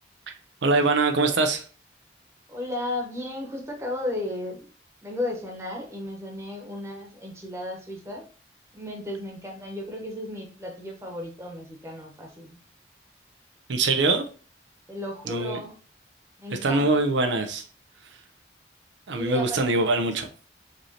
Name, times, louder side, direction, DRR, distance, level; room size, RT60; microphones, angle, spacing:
voice 1, 0.6-1.6 13.7-14.3 15.3-15.6 16.6-17.6 19.1-20.3, right 3 dB, 80° right, 6 dB, 0.6 m, -23 dB
voice 2, 2.5-4.7 5.0-8.2 8.7-12.6 14.9-15.8 16.4-17.0 19.1-19.8, left 1 dB, 15° right, 0 dB, 1.1 m, -34 dB
5.1 x 3.2 x 2.8 m, 0.38 s
head